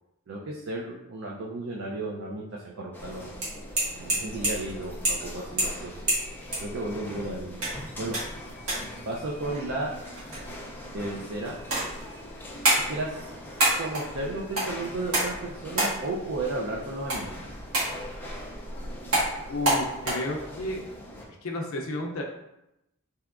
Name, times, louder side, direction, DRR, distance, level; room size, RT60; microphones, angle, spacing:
voice 1, 0.3-3.3 3.9-5.9 6.6-7.7 8.0-8.2 9.1-9.9 10.9-11.5 12.8-13.2 13.8-17.4, right 2 dB, 60° right, -2 dB, 0.4 m, -33 dB
sound 1, 2.9-21.3, left 1 dB, 10° left, 0.4 m, -43 dB
sound 2, 3.0-20.1, right 1 dB, 80° right, 1.4 m, -31 dB
voice 2, 19.5-20.8 21.4-22.2, left 1 dB, 70° left, 0 dB, 0.5 m, -32 dB
3.4 x 2.8 x 2.4 m, 0.88 s
head